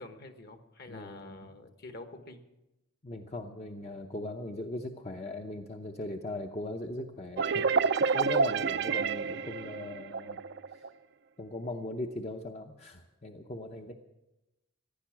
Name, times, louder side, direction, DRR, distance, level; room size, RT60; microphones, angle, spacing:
voice 1, 0.0-2.4, left 2 dB, 50° left, 7 dB, 1.4 m, -47 dB
voice 2, 0.9-1.4 3.0-10.4 10.7-10.9 11.4-13.9, left 2 dB, 30° left, 4 dB, 0.7 m, -39 dB
sound 1, 7.4-10.9, right 5 dB, 55° right, 0.5 m, -28 dB
15.0 x 11.0 x 7.4 m, 0.98 s
head